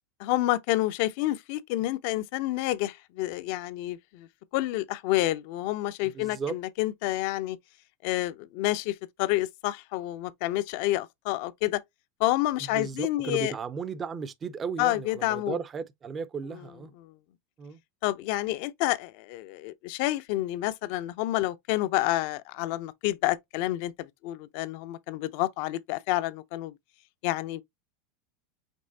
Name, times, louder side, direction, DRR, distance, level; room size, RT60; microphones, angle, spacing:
voice 1, 0.2-4.3 4.5-7.6 8.0-11.8 12.2-13.5 14.8-15.6 17.0-17.1 18.0-26.7 27.2-27.6, left 16 dB, 60° left, 0.5 m, -29 dB
voice 2, 6.1-6.6 12.7-16.9 17.6-17.8, right 5 dB, 25° right, 0.5 m, -35 dB
5.3 x 3.2 x 2.7 m
supercardioid pair, 130°, 0 cm